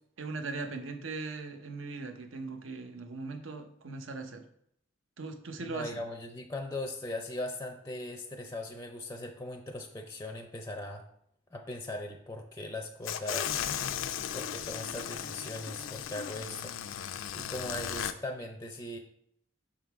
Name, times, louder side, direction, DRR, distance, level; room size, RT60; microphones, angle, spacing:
voice 1, 0.2-4.4 5.2-6.0, right 3 dB, 80° right, 6 dB, 0.8 m, -39 dB
voice 2, 5.6-11.0 11.5-13.6 14.3-16.7 17.3-19.0, left 1 dB, 15° left, 4 dB, 0.4 m, -39 dB
sound 1, 13.0-18.1, left 9 dB, 75° left, 0.4 m, -36 dB
5.8 x 3.8 x 4.6 m, 0.70 s
head